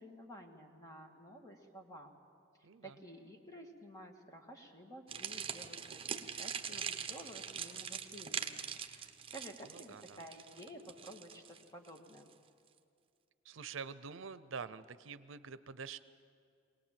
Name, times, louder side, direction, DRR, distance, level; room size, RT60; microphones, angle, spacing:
voice 1, 0.0-2.2 2.8-12.3, equal, 20° left, 3 dB, 1.9 m, -52 dB
voice 2, 2.6-3.0 9.7-10.2 13.4-16.0, right 5 dB, 80° right, 14 dB, 0.6 m, -46 dB
sound 1, 5.1-12.3, right 7 dB, 30° right, 1.0 m, -42 dB
23.0 x 19.0 x 7.5 m, 2.3 s
head